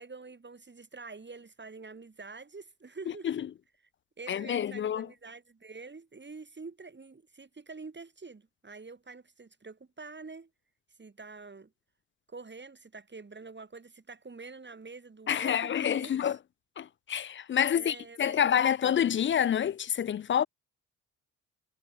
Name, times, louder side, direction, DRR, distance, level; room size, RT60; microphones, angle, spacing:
voice 1, 0.0-3.3 3.8-3.9 4.2-10.5 11.0-11.7 12.3-16.4 17.7-19.0, right 4 dB, 30° right, 6.5 m, -47 dB
voice 2, 4.3-5.1 15.3-16.4 16.8-20.5, left 9 dB, 35° left, 0.4 m, -27 dB
hypercardioid pair, 50°, 36 cm